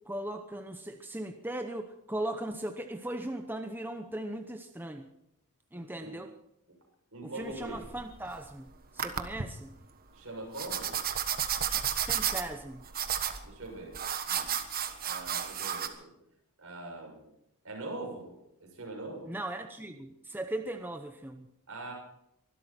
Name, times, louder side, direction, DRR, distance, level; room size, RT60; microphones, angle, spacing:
voice 1, 0.1-5.1 5.7-6.3 7.2-8.7 8.9-9.7 11.7-12.8 19.3-21.5, right 1 dB, 10° right, 6 dB, 0.9 m, -38 dB
voice 2, 5.7-6.1 7.1-7.8 10.1-11.0 13.4-14.0 14.3-14.5 15.0-16.1 16.6-17.2 17.6-18.3 18.6-19.3 21.7-21.9, right 2 dB, 65° right, 0 dB, 7.0 m, -42 dB
sound 1, 7.4-8.5 9.0-9.4 10.5-15.9, right 9 dB, 40° right, 1.4 m, -32 dB
23.5 x 12.5 x 4.4 m, 0.82 s
head